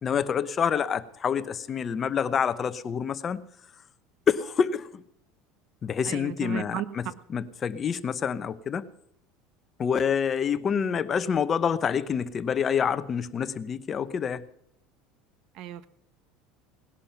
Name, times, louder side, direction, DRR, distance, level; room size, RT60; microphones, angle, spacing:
voice 1, 0.0-3.4 4.3-5.0 5.8-7.1 7.3-8.9 9.8-14.4, left 7 dB, 30° left, 14 dB, 0.8 m, -27 dB
voice 2, 6.0-6.9 15.5-15.9, right 12 dB, 55° right, 15 dB, 1.1 m, -34 dB
18.5 x 11.5 x 5.8 m, 0.71 s
supercardioid pair, 130°, 0 cm